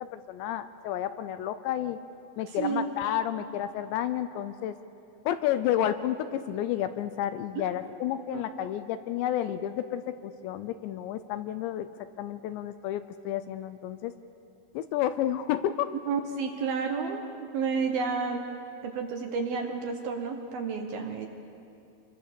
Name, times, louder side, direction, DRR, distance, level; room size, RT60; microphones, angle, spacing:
voice 1, 0.1-2.0 2.4-4.8 5.3-11.9 12.2-14.1 14.7-15.9, left 11 dB, 80° left, 11 dB, 2.7 m, -31 dB
voice 2, 2.5-2.9 7.6-7.7 8.3-8.4 16.1-18.5 18.8-21.3, right 5 dB, 65° right, 4 dB, 2.6 m, -31 dB
28.0 x 23.0 x 7.0 m, 2.6 s
omnidirectional pair, 5.5 m